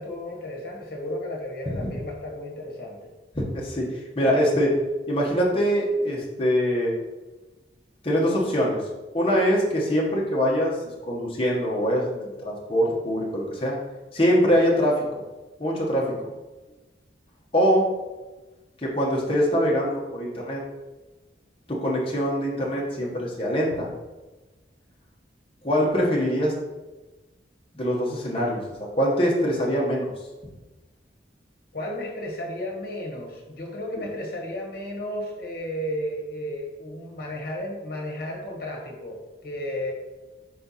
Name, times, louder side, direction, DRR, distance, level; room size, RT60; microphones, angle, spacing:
voice 1, 0.0-3.1 31.7-39.9, left 1 dB, 50° left, -1 dB, 1.4 m, -33 dB
voice 2, 3.3-4.8 5.1-6.9 8.0-8.8 9.1-10.8 11.1-13.8 14.1-15.0 15.6-16.1 17.5-17.9 18.8-20.6 21.7-23.9 25.6-26.5 27.7-30.1 34.0-34.1, equal, 30° left, -4 dB, 1.2 m, -23 dB
5.1 x 4.4 x 4.2 m, 1.2 s
head